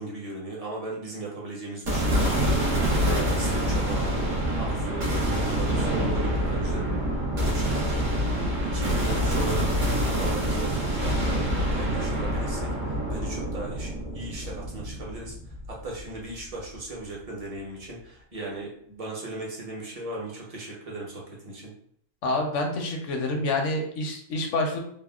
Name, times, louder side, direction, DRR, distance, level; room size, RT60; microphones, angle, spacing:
voice 1, 0.0-2.5 2.8-4.1 4.6-6.9 7.4-21.7, right 2 dB, 35° right, -3 dB, 0.7 m, -38 dB
sound 1, 1.9-16.2, equal, 75° right, 1.5 m, -26 dB
voice 2, 22.2-24.8, left 2 dB, 75° left, 2 dB, 1.0 m, -27 dB
3.5 x 2.1 x 2.3 m, 0.66 s
omnidirectional pair, 1.3 m